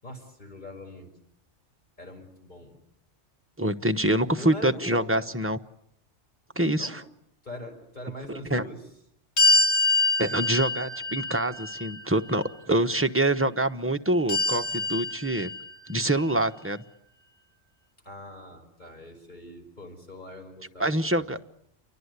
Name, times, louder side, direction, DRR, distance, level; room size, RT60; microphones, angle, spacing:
voice 1, 0.0-1.1 2.0-2.8 3.9-5.3 6.8-7.0 7.4-8.8 18.0-21.4, left 1 dB, 35° left, 3 dB, 5.9 m, -42 dB
voice 2, 3.6-5.6 6.6-7.0 8.5-8.6 10.2-15.5 15.9-16.8 20.8-21.4, right 1 dB, 10° right, 6 dB, 1.0 m, -25 dB
sound 1, 9.4-12.5 14.3-16.0, left 2 dB, 65° left, 2.4 m, -25 dB
29.5 x 24.0 x 8.3 m, 0.74 s
omnidirectional pair, 1.3 m